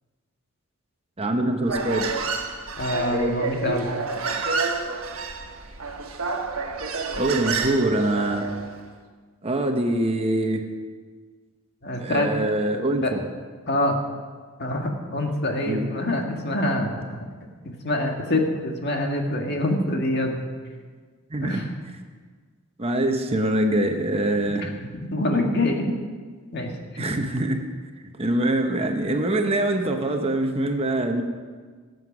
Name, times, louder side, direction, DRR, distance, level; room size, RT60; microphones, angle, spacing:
voice 1, 1.2-2.1 7.1-8.5 9.4-10.6 12.0-13.2 15.6-15.9 21.3-21.6 22.8-24.6 27.0-27.6 28.2-31.2, right 1 dB, 25° right, 4 dB, 1.0 m, -24 dB
Human voice, 1.6-8.7, right 4 dB, 65° right, 1.5 m, -29 dB
voice 2, 2.8-3.9 11.8-12.3 13.0-13.1 13.7-14.0 14.6-17.2 17.6-20.4 21.4-21.7 24.5-26.0 26.5-27.0, left 1 dB, 50° left, 2 dB, 1.8 m, -25 dB
18.0 x 7.9 x 6.1 m, 1.5 s
head